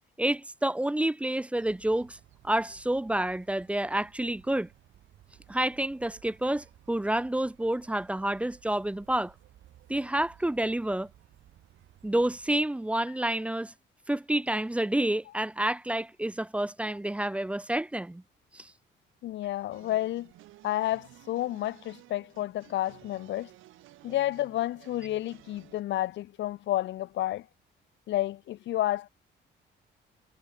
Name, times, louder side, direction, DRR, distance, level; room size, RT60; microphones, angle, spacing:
voice 1, 0.2-2.2 2.4-4.7 5.5-9.3 9.9-11.1 12.0-13.7 14.1-18.2 18.5-18.7, right 1 dB, 5° right, 0.3 m, -29 dB
sound 1, 1.5-12.7, right 12 dB, 70° right, 1.1 m, -58 dB
voice 2, 19.2-20.3 20.6-23.5 24.0-27.5 28.1-29.1, left 14 dB, 70° left, 0.5 m, -30 dB
sound 2, 19.7-25.8, right 17 dB, 90° right, 0.8 m, -54 dB
cardioid pair, 90°, 20 cm